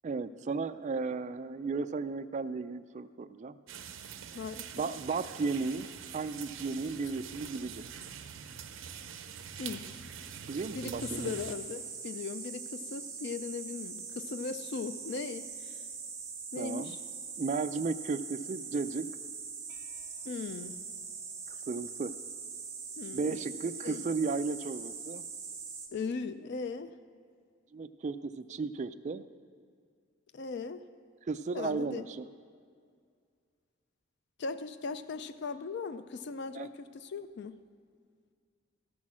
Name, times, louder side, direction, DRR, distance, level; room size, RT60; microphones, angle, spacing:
voice 1, 0.0-3.6 4.7-5.9 6.1-7.9 10.5-11.3 16.6-17.0 17.4-19.1 21.7-22.1 23.1-25.2 27.7-29.3 31.3-32.3 36.5-36.7, right 4 dB, 35° right, 12 dB, 0.3 m, -34 dB
sound 1, 3.7-11.5, right 7 dB, 70° right, 0.7 m, -44 dB
voice 2, 4.3-4.9 9.6-9.9 10.7-15.7 16.5-17.0 20.2-20.7 23.0-23.4 23.8-24.0 25.9-26.9 30.3-30.8 31.5-32.0 34.4-37.6, left 4 dB, 55° left, 11 dB, 0.4 m, -38 dB
sound 2, 11.0-25.9, right 5 dB, 15° right, 1.3 m, -42 dB
13.5 x 6.2 x 7.3 m, 2.1 s
head